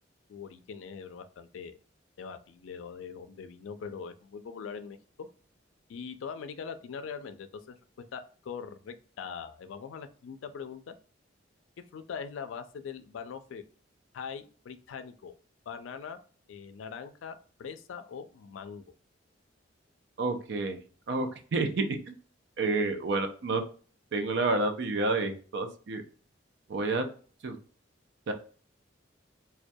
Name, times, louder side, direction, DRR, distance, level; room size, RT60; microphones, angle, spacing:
voice 1, 0.3-1.8 2.2-5.3 5.9-7.8 8.1-11.0 11.9-13.6 14.1-15.3 15.7-16.2 16.5-18.8, left 6 dB, 85° left, 10 dB, 0.3 m, -42 dB
voice 2, 20.2-20.8 21.1-22.1 22.6-23.6 24.1-26.0 26.7-27.1 27.4-27.6 28.3-28.4, right 3 dB, 60° right, 6 dB, 0.4 m, -29 dB
2.2 x 2.2 x 2.6 m, 0.41 s
head